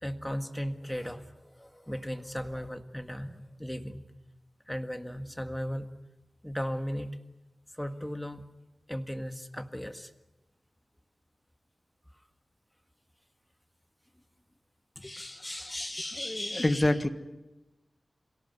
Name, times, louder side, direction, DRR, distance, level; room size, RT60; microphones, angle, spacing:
voice 1, 0.0-4.0 4.7-5.9 6.4-7.2 7.7-8.5 8.9-10.1 15.6-15.8, equal, 5° left, 8 dB, 1.8 m, -36 dB
voice 2, 15.0-17.1, left 1 dB, 25° left, 10 dB, 1.6 m, -29 dB
26.5 x 17.5 x 9.5 m, 1.0 s
wide cardioid pair, 80°, 0 cm